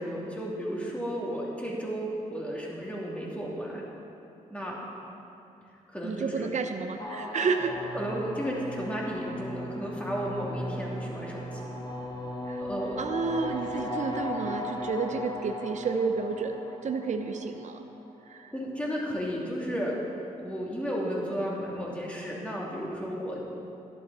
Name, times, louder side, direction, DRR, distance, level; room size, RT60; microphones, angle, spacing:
voice 1, 0.0-3.8 4.5-4.8 5.9-6.5 7.6-11.7 12.6-13.0 18.5-20.0 20.4-23.4, equal, 10° left, -4 dB, 2.8 m, -33 dB
voice 2, 6.0-7.8 12.5-12.6 13.0-17.8 18.3-18.5, right 5 dB, 55° right, 6 dB, 0.7 m, -31 dB
sound 1, 7.0-18.1, left 1 dB, 30° left, 1.5 m, -37 dB
12.0 x 11.5 x 4.2 m, 2.7 s
cardioid pair, 70°, 15 cm